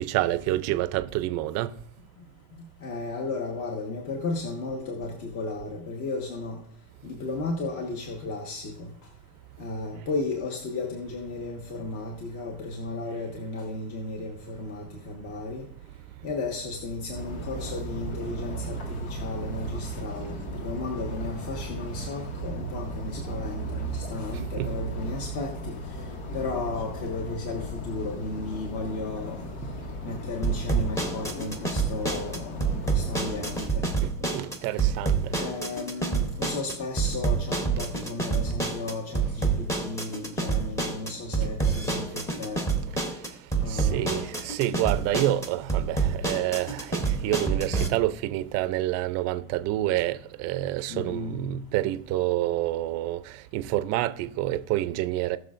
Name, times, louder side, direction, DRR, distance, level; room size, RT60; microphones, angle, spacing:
voice 1, 0.0-1.7 19.5-19.6 20.3-20.4 21.7-21.8 24.3-24.8 30.1-30.2 34.0-35.3 41.4-41.5 43.7-55.4, right 14 dB, 35° right, 0.5 m, -28 dB
voice 2, 2.8-6.6 7.0-8.9 9.6-15.6 16.2-26.1 26.3-29.5 30.0-33.9 34.7-34.8 35.3-42.7 43.6-44.2 50.9-51.4, left 3 dB, 45° left, 1.4 m, -34 dB
sound 1, 17.1-33.7, left 3 dB, 85° left, 2.1 m, -38 dB
sound 2, 30.4-47.9, right 4 dB, 5° left, 0.8 m, -28 dB
19.0 x 6.5 x 2.5 m
supercardioid pair, 160°, 43 cm